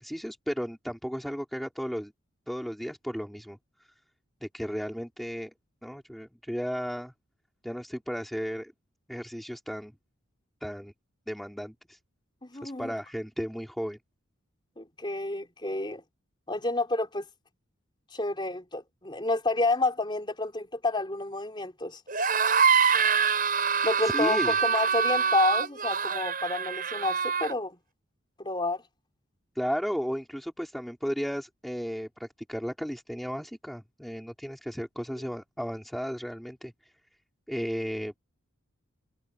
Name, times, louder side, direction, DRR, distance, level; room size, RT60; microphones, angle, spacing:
voice 1, 0.0-2.1 2.5-3.6 4.4-5.5 5.8-7.1 7.6-8.7 9.1-9.9 10.6-10.9 11.3-12.0 12.6-14.0 24.1-24.6 29.5-36.7 37.5-38.2, equal, ahead, 5.0 m, -34 dB
voice 2, 12.4-12.9 14.8-16.0 16.5-17.3 18.1-22.0 23.8-27.8 28.4-28.8, left 2 dB, 20° left, 3.8 m, -29 dB
sound 1, 22.1-27.5, right 6 dB, 40° right, 8.0 m, -25 dB
head